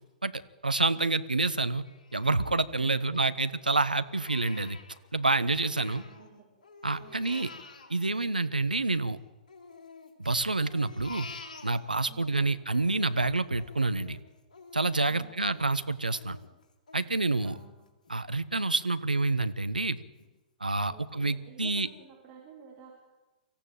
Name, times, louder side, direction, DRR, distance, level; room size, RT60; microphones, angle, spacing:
voice 1, 0.2-1.8 2.1-4.8 5.1-6.0 6.8-7.5 7.9-9.2 10.2-11.3 11.6-14.2 14.7-16.4 16.9-17.5 18.1-20.0 20.6-21.9, right 3 dB, 80° right, 12 dB, 1.1 m, -28 dB
Crying sobbing, 1.8-3.5 3.9-6.3 6.6-9.0 9.5-12.3 12.7-18.2 18.6-18.7 19.1-19.7 20.2-20.3 20.7-20.9, left 4 dB, 60° left, 3.5 m, -50 dB
voice 2, 2.8-3.3 5.9-6.5 7.0-7.6 12.0-12.5 15.0-15.5 17.4-17.7 20.9-23.0, right 6 dB, 30° right, -2 dB, 3.9 m, -53 dB
24.5 x 15.0 x 9.0 m, 1.1 s
figure-of-eight pair, 110°, 5 cm